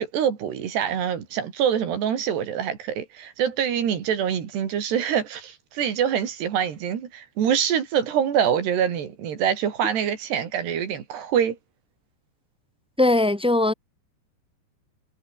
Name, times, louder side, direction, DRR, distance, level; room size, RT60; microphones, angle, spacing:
voice 1, 0.0-11.6, right 8 dB, 70° right, 5.1 m, -25 dB
voice 2, 13.0-13.7, left 2 dB, ahead, 3.1 m, -19 dB
omnidirectional pair, 5.1 m